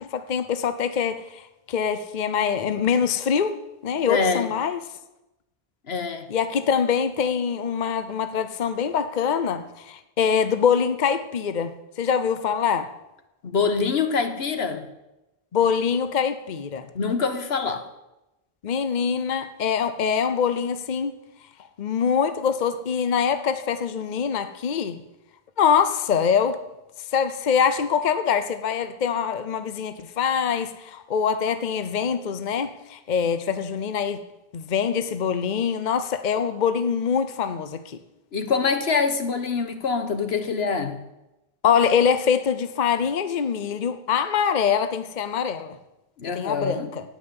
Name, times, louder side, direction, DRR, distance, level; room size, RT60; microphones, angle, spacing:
voice 1, 0.0-3.6 3.8-4.8 6.3-12.9 15.5-16.9 18.6-21.2 21.8-25.0 25.6-26.6 27.1-34.2 34.5-38.0 41.6-45.8 46.3-47.0, left 7 dB, 50° left, 0.8 m, -24 dB
voice 2, 4.1-4.5 5.9-6.3 13.4-14.9 16.9-17.9 38.3-41.0 46.2-46.9, left 5 dB, 80° left, 1.5 m, -25 dB
16.5 x 5.6 x 9.7 m
omnidirectional pair, 1.0 m